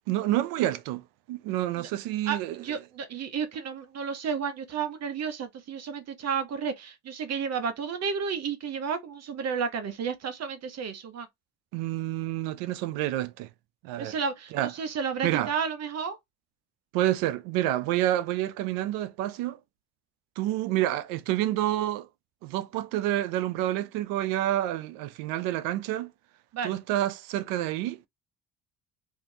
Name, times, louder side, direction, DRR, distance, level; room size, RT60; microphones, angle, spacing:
voice 1, 0.1-1.0 1.3-2.6 11.7-13.5 13.8-14.2 14.5-14.7 15.2-15.5 16.9-19.6 20.4-22.1 22.4-26.1 26.6-28.1, right 14 dB, 90° right, 0.5 m, -28 dB
voice 2, 2.3-11.3 14.0-16.2 26.5-26.7, right 6 dB, 50° right, 0.8 m, -32 dB
3.5 x 2.6 x 2.7 m
supercardioid pair, 85°, 33 cm